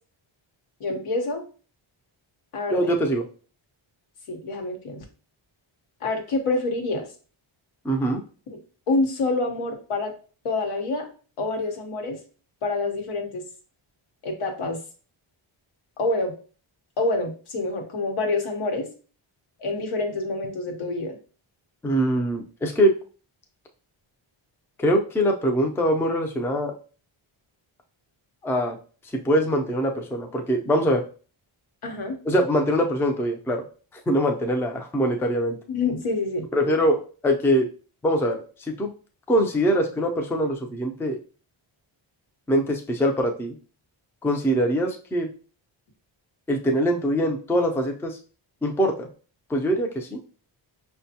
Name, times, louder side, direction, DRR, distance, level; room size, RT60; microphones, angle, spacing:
voice 1, 0.8-1.4 2.5-2.9 4.3-5.0 6.0-7.1 8.5-8.6 8.9-10.1 10.4-11.1 11.4-12.2 12.6-13.4 14.2-14.8 16.0-16.3 17.0-18.9 19.6-21.2 31.8-32.2 35.7-36.5, left 2 dB, 85° left, 3 dB, 1.0 m, -27 dB
voice 2, 2.7-3.2 7.8-8.2 21.8-22.9 24.8-26.7 28.4-28.8 29.2-31.0 32.3-33.6 34.1-35.6 36.5-37.7 38.0-38.9 39.3-41.2 42.5-43.6 44.2-45.3 46.5-48.2 48.6-49.1 49.5-50.2, equal, 5° left, 3 dB, 0.3 m, -23 dB
5.1 x 2.2 x 2.7 m, 0.38 s
wide cardioid pair, 135°, 49 cm